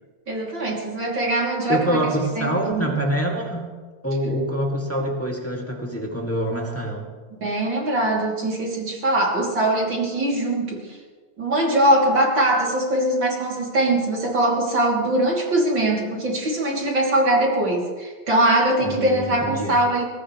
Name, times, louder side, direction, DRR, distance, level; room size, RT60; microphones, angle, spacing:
voice 1, 0.3-2.9 7.4-11.0 11.4-20.0, right 1 dB, 35° right, -2 dB, 3.3 m, -22 dB
voice 2, 1.7-3.7 4.0-7.1 18.8-19.7, right 1 dB, 5° left, -1 dB, 1.3 m, -25 dB
23.5 x 18.5 x 3.2 m, 1.5 s
omnidirectional pair, 4.2 m